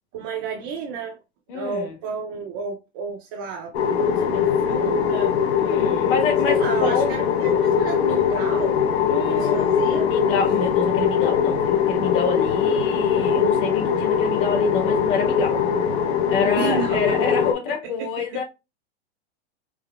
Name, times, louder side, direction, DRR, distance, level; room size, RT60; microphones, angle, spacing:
voice 1, 0.1-1.2 1.5-3.8 4.1-5.3 6.4-8.8 9.3-10.1 16.6-17.0 18.0-18.4, right 5 dB, 25° right, 0.3 m, -31 dB
voice 2, 1.5-2.0 5.6-7.1 9.1-15.6 16.3-18.4, left 5 dB, 50° left, 1.3 m, -27 dB
sound 1, 3.7-17.5, left 7 dB, 75° left, 0.9 m, -21 dB
4.7 x 2.8 x 2.2 m
supercardioid pair, 160°, 33 cm